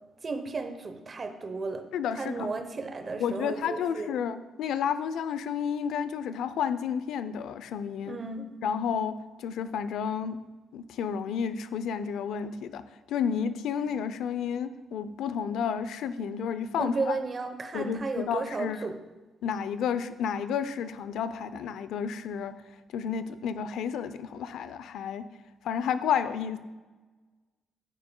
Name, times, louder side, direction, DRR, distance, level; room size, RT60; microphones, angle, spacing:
voice 1, 0.2-1.9 2.1-4.2 8.1-8.5 16.8-19.0, right 3 dB, 35° right, 9 dB, 0.8 m, -34 dB
voice 2, 1.9-2.5 3.2-8.2 8.6-10.4 10.7-12.8 13.1-17.2 17.7-18.8 19.4-22.5 22.9-25.2 25.6-26.6, left 7 dB, 80° left, 12 dB, 0.5 m, -31 dB
10.5 x 8.7 x 2.3 m, 1.2 s
cardioid pair, 90°, 0 cm